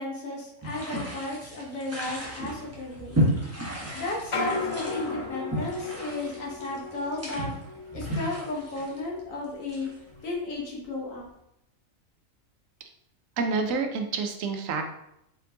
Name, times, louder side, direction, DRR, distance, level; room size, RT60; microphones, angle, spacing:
voice 1, 0.0-3.2 3.9-7.5 7.9-9.9 10.2-11.3, left 2 dB, 75° left, -2 dB, 1.4 m, -34 dB
sound 1, 0.6-10.2, equal, 15° right, 0.9 m, -33 dB
sound 2, 2.3-2.4 2.7-3.6 4.2-9.5 9.8-10.4 11.0-11.2, left 3 dB, 55° left, 0.3 m, -37 dB
voice 2, 13.4-14.8, right 4 dB, 75° right, 4 dB, 1.0 m, -28 dB
4.4 x 3.7 x 2.7 m, 0.81 s
omnidirectional pair, 1.4 m